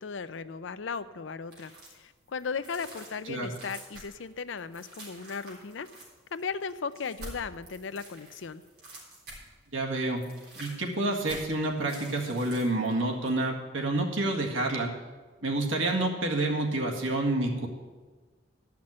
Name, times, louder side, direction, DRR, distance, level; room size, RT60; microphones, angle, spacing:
voice 1, 0.0-5.9 6.3-8.6, left 5 dB, 75° left, 13 dB, 0.5 m, -36 dB
sound 1, 1.5-2.0 2.4-9.7 10.0-12.9 13.2-13.3, right 1 dB, 50° right, 3.7 m, -48 dB
voice 2, 9.7-10.2 10.6-14.9 15.4-17.7, right 2 dB, 85° right, 0 dB, 1.8 m, -28 dB
12.0 x 5.9 x 8.7 m, 1.3 s
head